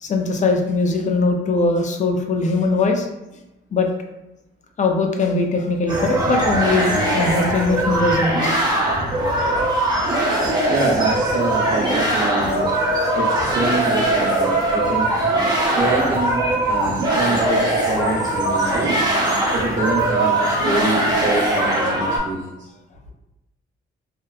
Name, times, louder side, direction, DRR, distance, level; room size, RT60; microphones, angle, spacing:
voice 1, 0.0-3.1 3.7-3.9 4.8-8.6, left 3 dB, 40° left, 3 dB, 0.4 m, -20 dB
sound 1, 5.9-22.2, right 1 dB, 20° right, 0.8 m, -20 dB
voice 2, 10.7-12.7 13.1-15.1 15.7-18.9 19.5-22.7, right 2 dB, 65° right, -8 dB, 0.7 m, -25 dB
2.8 x 2.0 x 2.3 m, 0.98 s
cardioid pair, 90°, 20 cm